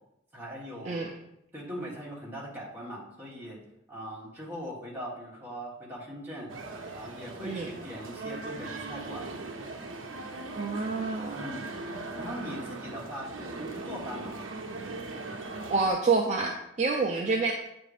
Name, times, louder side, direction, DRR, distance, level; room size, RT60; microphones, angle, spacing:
voice 1, 0.3-1.0 1.5-3.6 3.9-6.5 6.9-9.2 11.3-11.7 12.2-14.3, equal, 10° right, -5 dB, 1.3 m, -40 dB
sound 1, 6.5-15.9, right 3 dB, 80° right, 0.6 m, -39 dB
voice 2, 10.6-11.5 15.7-17.5, right 4 dB, 35° right, 0 dB, 0.4 m, -28 dB
7.5 x 2.6 x 4.9 m, 0.81 s
head